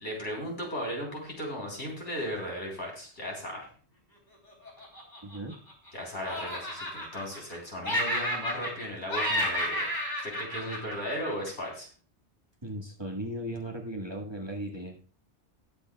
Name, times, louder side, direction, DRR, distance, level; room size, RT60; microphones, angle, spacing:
voice 1, 0.0-3.7 5.9-9.9 10.2-11.9, equal, 80° left, -2 dB, 4.1 m, -36 dB
Laughter, 4.6-5.9 6.2-7.6 7.8-8.8 9.1-11.7, equal, 45° left, 3.2 m, -32 dB
voice 2, 5.2-5.5 12.6-15.0, right 1 dB, 25° right, -1 dB, 1.6 m, -37 dB
19.5 x 8.3 x 2.3 m, 0.41 s
omnidirectional pair, 1.2 m